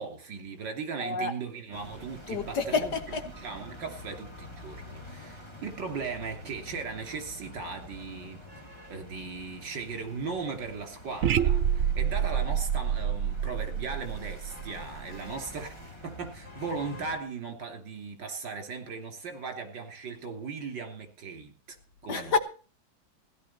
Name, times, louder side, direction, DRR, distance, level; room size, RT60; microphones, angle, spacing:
voice 1, 0.0-8.6 8.9-21.8 22.0-22.4, right 5 dB, 60° right, 3.6 m, -38 dB
voice 2, 1.0-1.3 2.3-3.3 22.1-22.4, left 4 dB, 55° left, 1.8 m, -28 dB
sound 1, 1.7-17.2, left 1 dB, 15° left, 1.7 m, -47 dB
sound 2, 11.2-15.3, right 9 dB, 75° right, 0.6 m, -28 dB
16.5 x 11.5 x 4.3 m
omnidirectional pair, 2.3 m